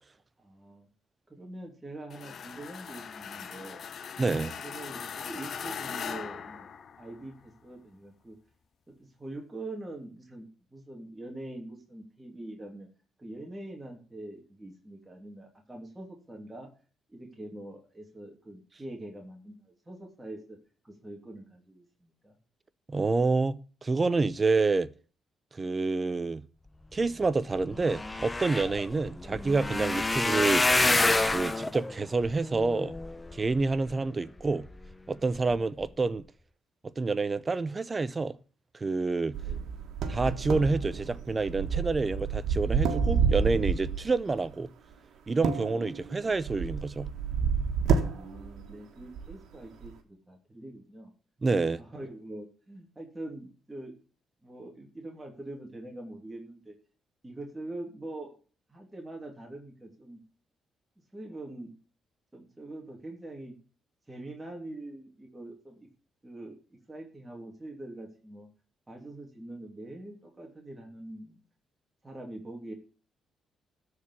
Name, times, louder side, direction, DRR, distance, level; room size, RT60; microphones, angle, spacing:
voice 1, 0.4-0.9 1.3-3.9 4.6-6.7 7.0-8.4 9.0-12.9 13.2-16.7 17.1-20.6 20.8-22.4 34.0-34.2 39.5-39.7 48.0-51.1 51.8-53.9 54.4-56.7 57.2-58.3 58.7-60.2 61.1-61.7 62.3-63.5 64.1-65.9 66.2-66.6 66.9-68.5 68.9-71.4 72.0-72.7, right 1 dB, 15° right, 2.8 m, -44 dB
sound 1, 2.1-7.3, left 7 dB, 55° left, 1.0 m, -40 dB
voice 2, 4.2-4.5 22.9-24.9 25.6-26.4 26.9-30.7 31.3-32.9 33.3-34.6 35.1-36.2 37.0-38.4 38.8-39.3 40.1-44.7 45.3-47.1 51.4-51.8, right 3 dB, 30° right, 0.7 m, -28 dB
sound 2, 27.2-27.3 27.5-33.9 34.5-34.9 35.3-35.5 35.8-35.9, left 2 dB, 15° left, 0.9 m, -28 dB
sound 3, 39.3-44.1 45.3-48.7 49.0-49.3 49.8-49.9, right 6 dB, 75° right, 1.7 m, -29 dB
13.0 x 4.9 x 8.2 m
cardioid pair, 90°, 0 cm